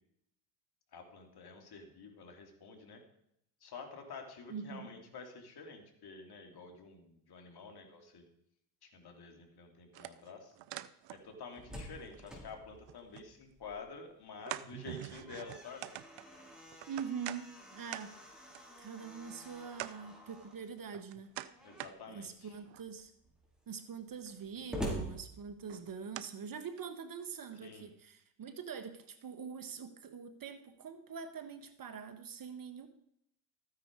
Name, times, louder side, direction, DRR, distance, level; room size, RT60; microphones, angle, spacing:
voice 1, 0.9-3.0 3.6-8.2 8.8-10.6 11.1-15.9 21.6-22.6 27.6-27.9, left 4 dB, 50° left, 4 dB, 3.3 m, -49 dB
voice 2, 4.5-4.9 16.9-18.1 18.8-21.3 22.1-23.1 23.7-32.9, right 6 dB, 40° right, 10 dB, 1.6 m, -44 dB
sound 1, 9.9-11.6 11.8-13.3 13.7-13.8 14.4-17.4 17.9-18.0 18.5-18.6 19.3-19.4 19.7-20.0 20.5-21.9 22.4-22.9 24.3-24.4 24.8-25.2 25.7-26.3 26.8-26.9 27.5-27.6, right 14 dB, 60° right, 0.9 m, -46 dB
Slam, 11.4-14.1 14.4-14.5 15.0-20.6 21.5-22.0 22.6-22.7 22.9-26.0, equal, ahead, 4.8 m, -47 dB
14.0 x 9.7 x 4.8 m, 0.75 s
supercardioid pair, 80°, 50 cm